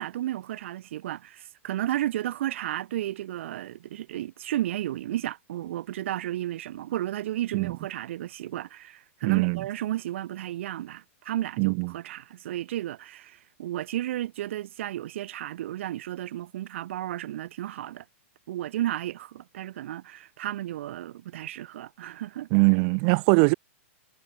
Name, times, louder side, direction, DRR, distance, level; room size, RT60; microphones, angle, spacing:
voice 1, 0.0-18.0 18.5-22.5, right 13 dB, 60° right, 0.7 m, -33 dB
voice 2, 9.2-9.6 11.6-11.9 22.5-23.5, right 40 dB or more, 35° right, 0.4 m, -21 dB
supercardioid pair, 160°, 7 cm